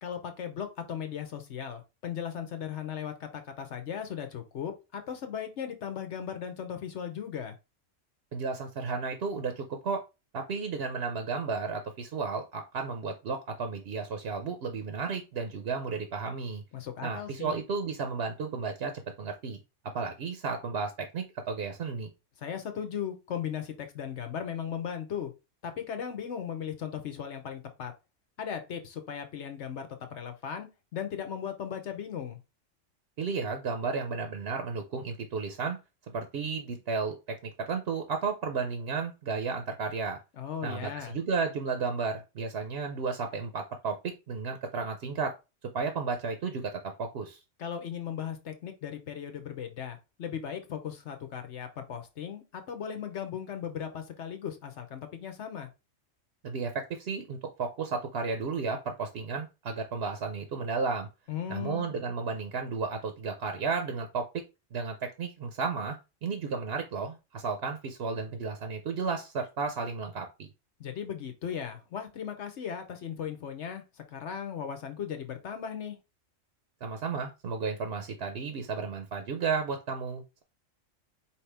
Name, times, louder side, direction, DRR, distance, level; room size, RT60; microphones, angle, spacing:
voice 1, 0.0-7.6 16.7-17.6 22.4-25.3 25.6-27.9 28.4-32.4 40.3-41.2 47.6-55.7 61.3-61.9 70.8-76.0, left 8 dB, 65° left, 7 dB, 1.1 m, -37 dB
voice 2, 8.3-10.0 10.3-16.6 17.0-18.9 19.2-19.6 19.9-22.1 33.2-35.8 36.1-40.2 40.6-45.3 45.7-47.4 56.4-61.1 61.5-64.4 64.7-66.0 66.2-70.5 76.8-80.4, right 4 dB, 60° right, 6 dB, 0.9 m, -33 dB
4.9 x 2.9 x 3.3 m, 0.27 s
omnidirectional pair, 1.3 m